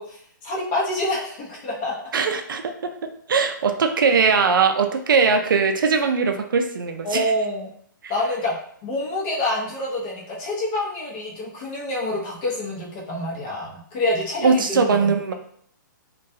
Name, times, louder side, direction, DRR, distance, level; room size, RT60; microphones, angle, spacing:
voice 1, 0.0-1.9 7.0-7.7 8.1-8.6 8.8-15.3, left 1 dB, 30° left, -4 dB, 0.8 m, -27 dB
voice 2, 2.1-2.9 3.3-7.3 14.4-15.3, right 5 dB, 85° right, 5 dB, 0.4 m, -20 dB
2.3 x 2.2 x 2.6 m, 0.65 s
hypercardioid pair, 150°, 11 cm